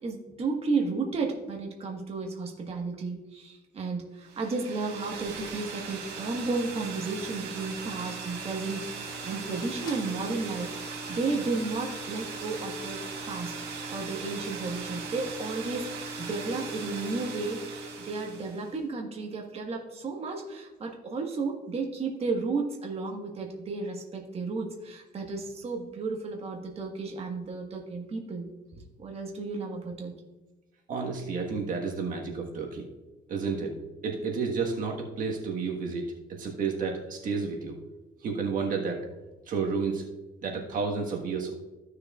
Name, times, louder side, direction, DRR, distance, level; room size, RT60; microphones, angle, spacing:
voice 1, 0.0-17.6 18.1-28.5 29.0-30.1, right 3 dB, 35° right, 1 dB, 1.4 m, -33 dB
sound 1, 4.2-18.7, right 4 dB, 85° right, 2.0 m, -39 dB
sound 2, 5.1-10.2, left 2 dB, 25° left, 3.1 m, -55 dB
voice 2, 30.9-32.8 33.3-33.8 34.0-37.8 38.2-39.0 39.5-40.0 40.4-41.5, right 5 dB, 55° right, 1 dB, 1.5 m, -31 dB
14.5 x 6.5 x 2.4 m, 1.1 s
cardioid pair, 110°, 17 cm